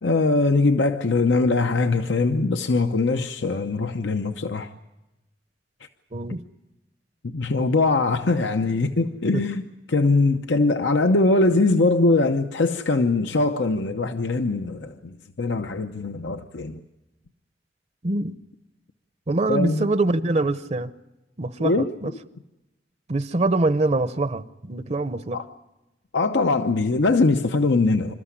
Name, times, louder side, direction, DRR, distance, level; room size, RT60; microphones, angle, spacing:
voice 1, 0.0-4.7 7.2-9.6 9.9-16.8 19.5-19.9 21.6-22.2 25.3-25.4 26.1-28.1, left 3 dB, 75° left, 0.8 m, -22 dB
voice 2, 18.0-18.4 19.3-20.9 21.4-22.1 23.1-25.4, right 2 dB, 35° right, 0.7 m, -24 dB
27.5 x 13.5 x 9.9 m
head